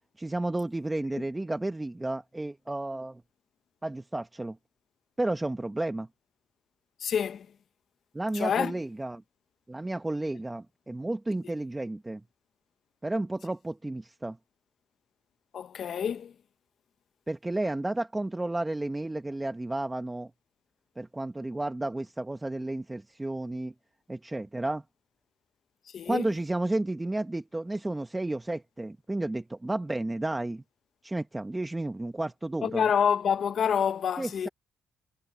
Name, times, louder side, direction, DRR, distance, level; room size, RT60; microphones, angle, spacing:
voice 1, 0.2-3.2 3.8-4.6 5.2-6.1 8.1-9.2 9.7-12.2 13.0-14.4 17.3-20.3 21.0-23.7 24.1-24.8 26.1-30.6 31.0-32.9 34.2-34.5, right 2 dB, 15° right, 1.1 m, -32 dB
voice 2, 7.0-7.5 8.3-8.7 15.5-16.3 25.9-26.3 32.6-34.5, left 7 dB, 60° left, 0.9 m, -27 dB
cardioid pair, 90°, 0 cm